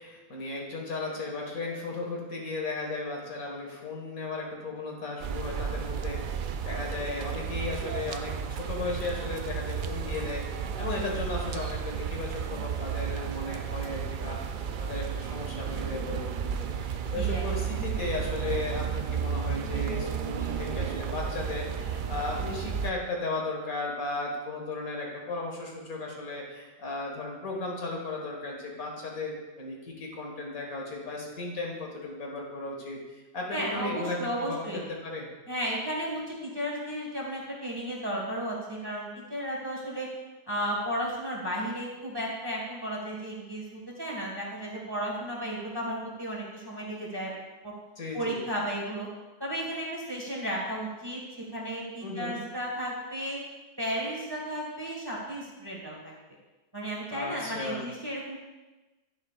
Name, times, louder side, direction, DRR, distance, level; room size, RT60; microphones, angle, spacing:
voice 1, 0.0-14.4 14.8-16.3 16.6-35.3 48.0-48.4 52.0-52.4 57.1-57.9, left 3 dB, 85° left, -1 dB, 2.3 m, -35 dB
sound 1, 5.2-22.9, right 7 dB, 90° right, 0.4 m, -33 dB
voice 2, 17.1-17.5 33.5-34.8 35.5-40.1 40.5-47.3 47.6-47.7 48.1-49.1 49.4-53.4 53.8-56.1 56.7-58.4, equal, 15° right, -4 dB, 1.7 m, -34 dB
10.5 x 9.9 x 2.4 m, 1.2 s
omnidirectional pair, 1.4 m